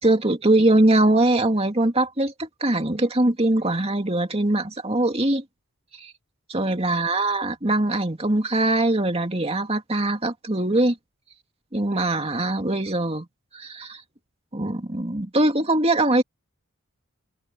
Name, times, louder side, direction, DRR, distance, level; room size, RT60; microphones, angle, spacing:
voice 1, 0.0-5.4 5.9-6.1 6.5-11.0 11.7-13.3 13.5-14.0 14.5-16.2, right 2 dB, 25° right, 2.6 m, -22 dB
head